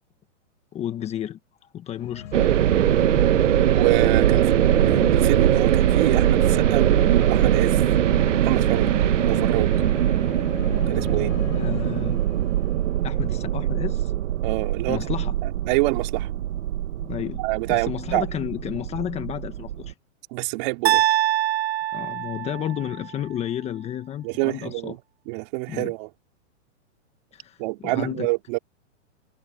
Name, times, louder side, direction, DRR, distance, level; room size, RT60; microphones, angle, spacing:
voice 1, 0.7-1.4 1.7-2.5 4.4-4.5 11.5-12.2 13.0-14.1 14.9-15.3 17.0-17.4 17.7-19.9 21.9-24.9 25.7-25.9 27.3-28.3, left 11 dB, 15° left, 1.3 m, -31 dB
sound 1, 2.0-13.5, left 9 dB, 85° left, 7.0 m, -35 dB
sound 2, 2.3-19.9, right 12 dB, 75° right, 1.4 m, -21 dB
voice 2, 3.7-4.5 5.1-7.8 8.4-8.9 9.3-9.7 10.9-11.3 14.4-15.1 15.4-16.3 17.4-18.3 20.3-21.0 24.2-25.0 25.3-26.1 27.6-28.6, right 24 dB, 40° right, 3.2 m, -27 dB
sound 3, 20.8-23.0, right 14 dB, 55° right, 1.2 m, -23 dB
hypercardioid pair, 155°, 37 cm